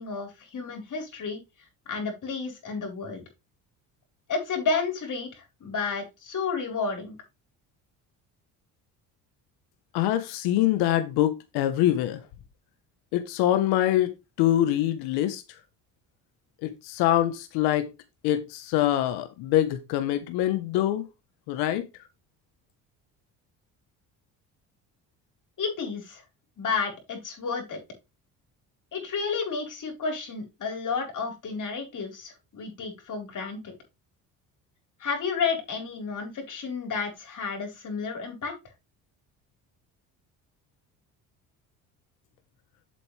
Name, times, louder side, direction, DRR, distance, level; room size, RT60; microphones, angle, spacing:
voice 1, 0.0-1.4 1.9-3.2 4.3-7.2 25.6-26.2 26.6-27.8 28.9-33.7 35.0-38.5, left 5 dB, 50° left, 3 dB, 4.8 m, -31 dB
voice 2, 9.9-12.2 13.1-15.4 16.6-17.9 18.2-21.0 21.5-21.8, left 13 dB, 80° left, 10 dB, 1.2 m, -24 dB
7.8 x 7.2 x 3.4 m, 0.24 s
supercardioid pair, 75°, 38 cm